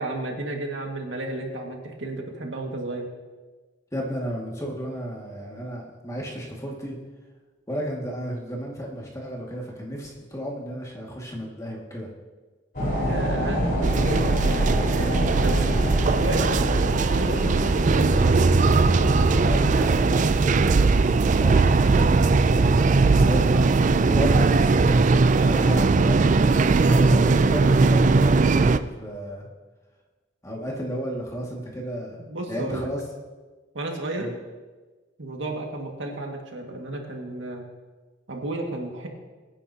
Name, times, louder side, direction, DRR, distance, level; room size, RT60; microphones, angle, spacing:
voice 1, 0.0-3.1 13.0-15.8 16.1-18.4 32.2-32.9 33.7-34.3 35.2-37.6 38.3-39.1, right 2 dB, 75° right, 1 dB, 2.0 m, -32 dB
voice 2, 3.9-6.9 7.7-12.1 19.3-29.5 30.4-32.2 32.5-33.0 34.2-34.4, equal, 15° left, -2 dB, 2.1 m, -33 dB
sound 1, 12.7-20.0, equal, 50° left, 4.4 m, -27 dB
sound 2, 13.8-28.8, right 3 dB, 40° right, 0.4 m, -19 dB
22.5 x 9.9 x 2.9 m, 1.3 s
head